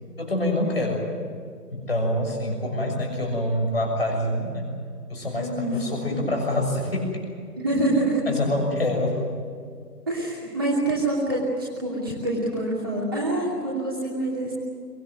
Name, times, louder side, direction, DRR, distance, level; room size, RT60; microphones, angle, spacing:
voice 1, 0.2-1.0 1.7-4.7 5.1-7.2 8.3-9.2, left 1 dB, 35° left, 1 dB, 6.5 m, -26 dB
voice 2, 5.3-5.8 6.1-6.2 7.6-8.2 10.1-14.5, right 2 dB, 15° right, -7 dB, 2.8 m, -26 dB
24.0 x 20.0 x 9.4 m, 2.2 s
figure-of-eight pair, 170°, 48 cm